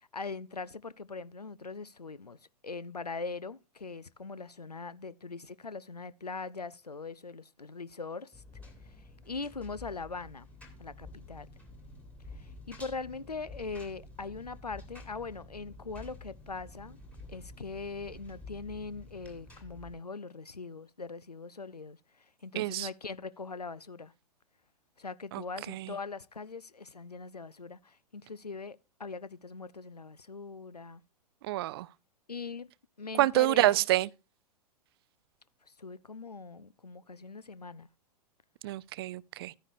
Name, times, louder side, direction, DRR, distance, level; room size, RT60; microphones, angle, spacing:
voice 1, 0.1-2.4 2.6-8.4 8.8-9.0 9.2-10.5 10.8-11.5 12.4-17.0 17.3-24.1 25.0-31.0 32.3-32.7 33.0-33.8 35.8-37.9, left 4 dB, 90° left, 0.4 m, -41 dB
Engine, 8.3-19.9, left 2 dB, 5° left, 2.1 m, -50 dB
voice 2, 22.6-22.9 25.3-25.4 25.7-25.9 31.4-31.9 33.2-34.1 38.6-39.5, right 16 dB, 40° right, 0.4 m, -27 dB
12.0 x 9.7 x 2.6 m
figure-of-eight pair, 100°, 20 cm